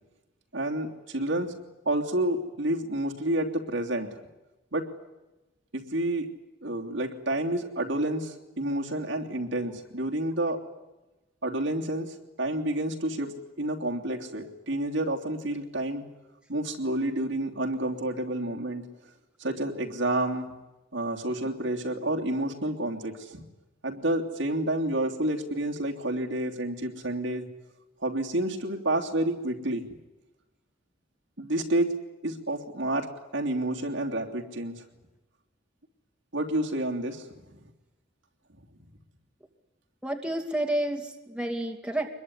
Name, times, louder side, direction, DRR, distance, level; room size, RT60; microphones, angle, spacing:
voice 1, 0.5-1.6 1.8-4.1 4.7-4.9 5.7-6.3 6.6-10.6 11.4-16.0 16.5-18.8 19.4-20.5 20.9-23.4 23.8-27.5 28.0-29.8 31.4-31.9 32.2-34.8 36.3-37.6, right 1 dB, 70° right, 1 dB, 3.2 m, -29 dB
voice 2, 40.0-42.1, right 1 dB, 5° right, 3 dB, 2.6 m, -30 dB
25.0 x 22.0 x 9.8 m, 1.0 s
head